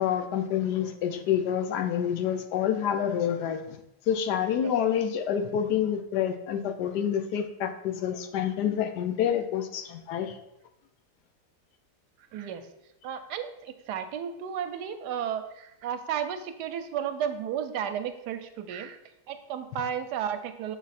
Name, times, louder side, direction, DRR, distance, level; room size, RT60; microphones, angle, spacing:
voice 1, 0.0-3.8 4.1-10.4, left 9 dB, 80° left, 7 dB, 1.2 m, -28 dB
voice 2, 12.3-12.7 13.0-19.0 19.3-20.8, right 8 dB, 90° right, 9 dB, 1.2 m, -33 dB
7.1 x 4.1 x 4.1 m, 0.85 s
omnidirectional pair, 1.8 m